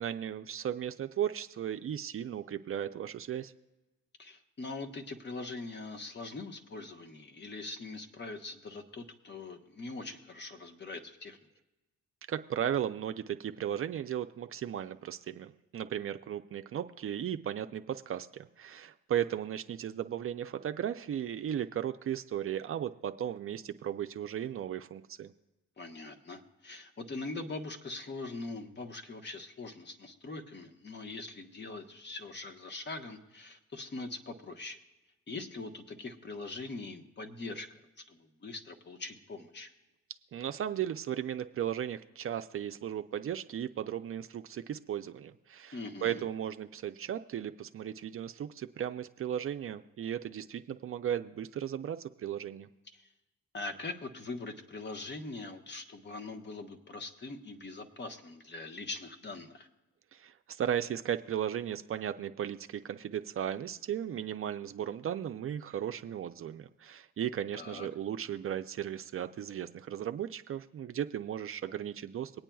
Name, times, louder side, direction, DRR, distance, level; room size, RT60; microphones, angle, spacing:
voice 1, 0.0-3.5 12.3-25.3 40.3-52.7 60.1-72.3, right 10 dB, 45° right, 8 dB, 0.5 m, -36 dB
voice 2, 4.2-11.4 25.8-34.8 35.3-39.7 45.7-46.2 52.9-53.1 53.5-59.7 67.5-67.9, left 3 dB, 35° left, 6 dB, 1.2 m, -42 dB
24.0 x 8.8 x 2.3 m, 1.1 s
cardioid pair, 90°, 30 cm